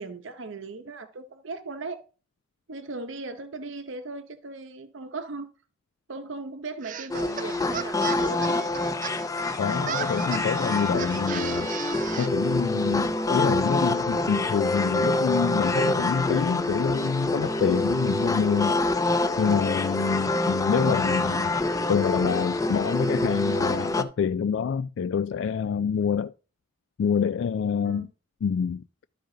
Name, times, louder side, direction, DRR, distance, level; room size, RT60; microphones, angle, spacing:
voice 1, 0.0-2.0 2.7-5.5 6.1-8.6 27.8-28.1, right 3 dB, 75° right, 0.8 m, -38 dB
sound 1, 6.8-12.3, right 8 dB, 40° right, 0.5 m, -36 dB
sound 2, 7.1-24.0, left 2 dB, 15° left, 0.5 m, -26 dB
voice 2, 9.6-11.7 12.2-18.8 19.4-21.5 21.9-26.3 27.0-28.1 28.4-28.8, left 6 dB, 70° left, 0.3 m, -26 dB
12.5 x 5.1 x 3.8 m
head